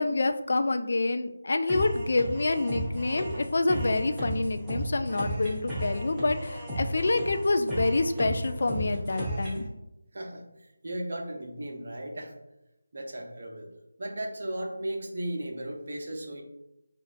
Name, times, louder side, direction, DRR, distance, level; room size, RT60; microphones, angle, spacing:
voice 1, 0.0-9.7, left 2 dB, 50° left, 8 dB, 0.3 m, -27 dB
sound 1, 1.7-9.7, equal, 5° right, 0.7 m, -34 dB
voice 2, 10.1-10.5 10.8-12.3 12.9-13.7 14.0-16.4, right 1 dB, 45° right, 1 dB, 0.7 m, -35 dB
6.0 x 2.4 x 2.4 m, 0.92 s
figure-of-eight pair, 160°, 0 cm